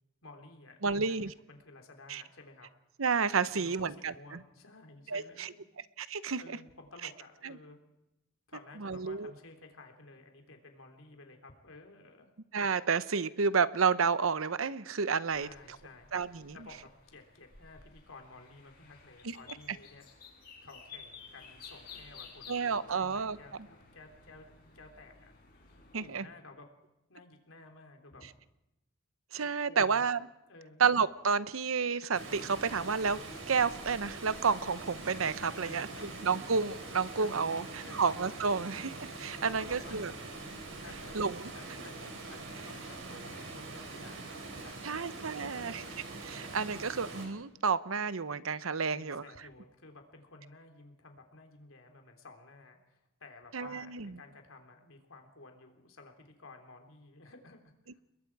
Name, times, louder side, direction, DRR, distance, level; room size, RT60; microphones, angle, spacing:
voice 1, 0.2-2.7 3.5-5.6 6.4-7.8 8.5-12.3 15.4-16.1 16.5-20.1 20.6-24.4 24.7-25.3 25.6-26.6 27.1-28.3 29.4-30.1 30.5-30.9 35.5-36.1 37.2-38.0 39.5-40.2 40.8-45.0 45.4-45.9 48.8-58.0, left 3 dB, 80° left, 4 dB, 3.6 m, -53 dB
voice 2, 0.8-1.3 2.1-2.2 3.0-4.4 5.1-5.5 6.0-6.4 7.4-7.5 8.8-9.3 12.5-15.5 16.1-16.6 19.2-19.4 22.5-23.4 25.9-26.3 29.3-30.2 30.8-33.2 33.5-40.1 41.1-41.5 44.8-45.8 46.2-49.2 53.5-54.1, right 5 dB, 85° right, 15 dB, 0.9 m, -30 dB
sound 1, 15.3-26.2, left 5 dB, 50° left, 6.4 m, -54 dB
Water, 32.1-47.3, right 3 dB, 65° right, 5.4 m, -44 dB
29.5 x 21.5 x 4.8 m, 0.91 s
head